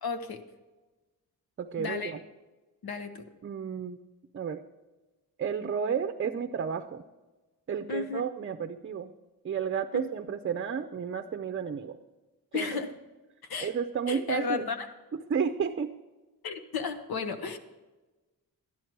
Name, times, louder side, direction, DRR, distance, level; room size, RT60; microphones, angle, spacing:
voice 1, 0.0-0.4 1.8-2.1 2.8-3.2 7.9-8.2 9.9-10.0 12.5-12.9 13.5-13.7 14.1-14.9 16.4-17.6, left 5 dB, 90° left, 8 dB, 1.1 m, -33 dB
voice 2, 1.6-2.2 3.4-4.0 4.3-4.6 5.4-7.0 7.7-9.1 9.4-12.0 12.5-12.8 13.6-14.7 15.1-15.9, right 7 dB, 35° right, 7 dB, 0.5 m, -32 dB
13.0 x 11.0 x 4.6 m, 1.2 s
wide cardioid pair, 135°, 36 cm